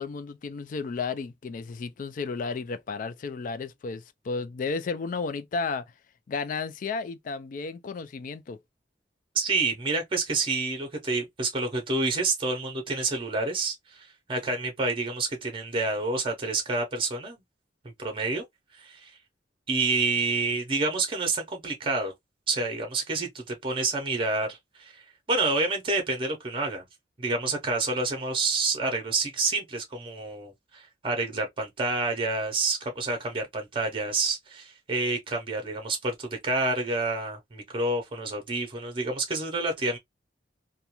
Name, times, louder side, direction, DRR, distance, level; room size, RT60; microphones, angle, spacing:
voice 1, 0.0-5.9 6.3-8.6, left 4 dB, 45° left, 0.3 m, -33 dB
voice 2, 9.4-17.4 18.0-18.4 18.8-19.1 19.7-22.1 22.5-26.8 27.2-40.0, right 3 dB, 30° right, 0.6 m, -28 dB
2.4 x 2.2 x 2.8 m
head